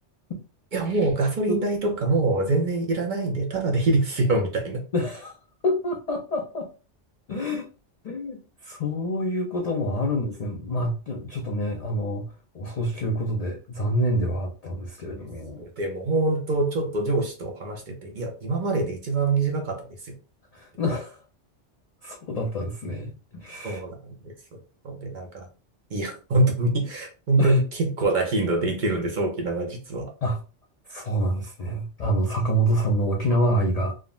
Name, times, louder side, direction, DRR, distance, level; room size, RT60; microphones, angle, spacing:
voice 1, 0.7-4.8 15.6-20.1 23.6-24.0 24.2-24.6 24.8-25.5 25.9-30.1, right 2 dB, 50° right, 2 dB, 0.6 m, -25 dB
voice 2, 4.9-5.3 5.6-6.7 7.3-7.7 8.0-12.3 12.5-15.6 20.5-21.2 22.0-23.8 27.4-27.6 30.2-30.4 30.9-33.9, equal, 60° left, 1 dB, 0.4 m, -27 dB
3.5 x 2.0 x 2.3 m, 0.34 s
omnidirectional pair, 1.2 m